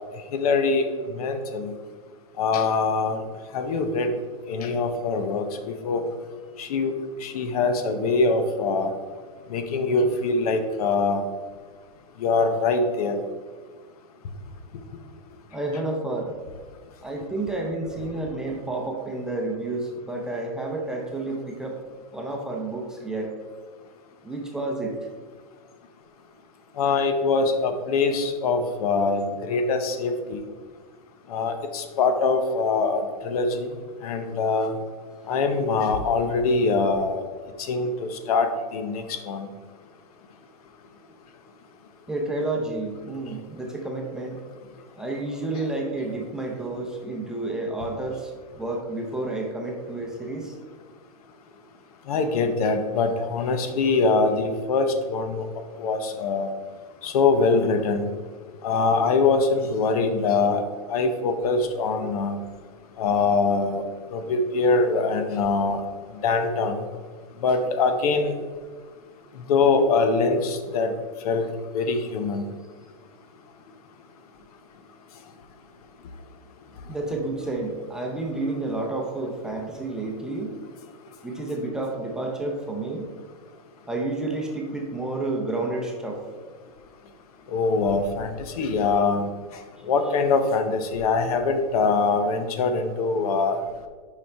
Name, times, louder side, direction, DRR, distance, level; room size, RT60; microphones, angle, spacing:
voice 1, 0.3-1.7 2.4-3.2 3.5-4.1 4.5-6.0 6.6-6.9 7.2-8.9 9.5-11.2 12.2-13.2 26.8-30.4 31.3-33.7 34.0-34.7 35.3-37.2 37.6-39.5 52.1-55.5 55.8-56.5 57.0-58.1 58.6-60.6 60.9-62.4 63.0-63.8 64.1-65.8 66.2-66.8 67.4-68.3 69.5-70.9 71.2-72.4 87.5-89.3 89.9-93.6, left 4 dB, 75° left, 7 dB, 0.8 m, -23 dB
voice 2, 15.5-16.4 17.0-21.8 22.1-23.3 24.2-25.0 42.1-44.4 45.0-48.3 48.6-50.6 76.9-80.6 81.2-83.1 83.9-86.2, right 2 dB, 5° right, -1 dB, 0.6 m, -30 dB
6.8 x 4.9 x 3.4 m, 1.5 s
supercardioid pair, 150°, 19 cm